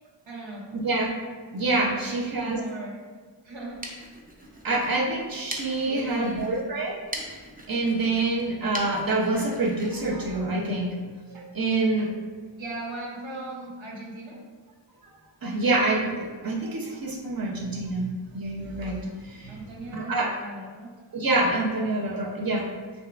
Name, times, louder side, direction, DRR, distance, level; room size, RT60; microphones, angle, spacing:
voice 1, 0.3-0.7 1.9-2.9 3.4-3.8 5.9-6.5 12.6-14.4 19.5-21.1, right 2 dB, 80° right, -3 dB, 1.0 m, -38 dB
voice 2, 1.5-2.6 4.6-7.1 7.7-10.9 11.3-12.1 15.4-19.6 19.9-20.4 21.1-22.7, right 2 dB, 50° right, -1 dB, 0.8 m, -26 dB
sound 1, 3.5-11.0, right 1 dB, 20° right, 0.5 m, -42 dB
6.2 x 2.4 x 2.5 m, 1.4 s
wide cardioid pair, 65°, 45 cm